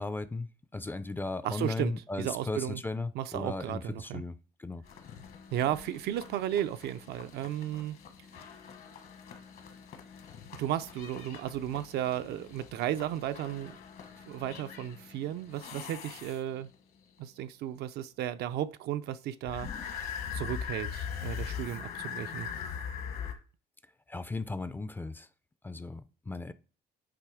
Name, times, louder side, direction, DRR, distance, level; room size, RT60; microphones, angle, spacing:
voice 1, 0.0-4.8 24.1-25.3 25.6-26.5, left 3 dB, 10° left, 0.3 m, -36 dB
voice 2, 1.4-2.8 3.1-4.2 5.5-8.0 10.6-13.8 14.3-16.7 17.2-22.5, right 11 dB, 70° right, 0.4 m, -34 dB
sound 1, 4.8-16.7 19.4-23.3, left 7 dB, 65° left, 1.2 m, -42 dB
8.6 x 3.0 x 4.9 m
cardioid pair, 110°, 17 cm